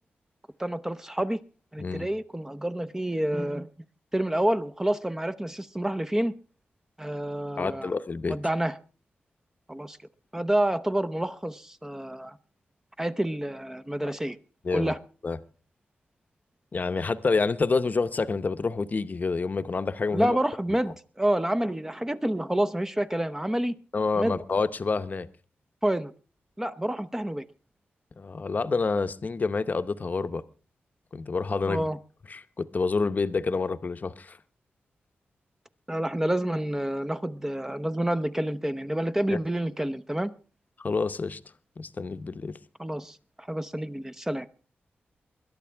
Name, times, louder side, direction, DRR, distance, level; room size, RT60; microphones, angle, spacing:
voice 1, 0.6-1.4 1.7-3.7 4.1-6.3 7.0-7.9 8.3-8.7 9.7-10.0 10.3-12.4 13.0-14.4 14.7-15.0 20.1-23.7 24.2-24.4 25.8-26.1 26.6-27.4 31.7-32.0 35.9-40.3 42.8-44.5, right 1 dB, 10° right, 0.7 m, -28 dB
voice 2, 7.6-8.4 14.0-14.1 14.6-14.9 15.2-15.4 16.7-20.4 23.9-25.3 28.2-30.4 31.1-31.9 32.3-34.4 39.3-39.4 40.8-41.4 41.8-42.5, left 4 dB, 40° left, 0.8 m, -28 dB
21.5 x 11.5 x 3.4 m
cardioid pair, 75°, 4 cm